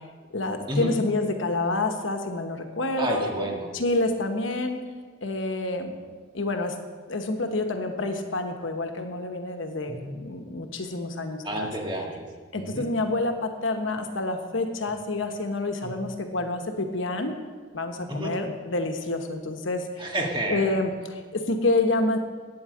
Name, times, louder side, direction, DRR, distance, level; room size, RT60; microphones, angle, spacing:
voice 1, 0.3-3.3 3.7-4.8 5.2-5.9 6.3-6.8 7.1-11.7 12.5-17.3 17.7-20.1 20.5-22.2, left 2 dB, 75° left, 5 dB, 1.1 m, -28 dB
voice 2, 3.0-3.7 9.9-10.2 11.4-12.2 12.6-12.9 18.1-18.3 20.0-20.8, right 1 dB, 25° right, -1 dB, 1.7 m, -30 dB
8.9 x 8.7 x 7.7 m, 1.5 s
head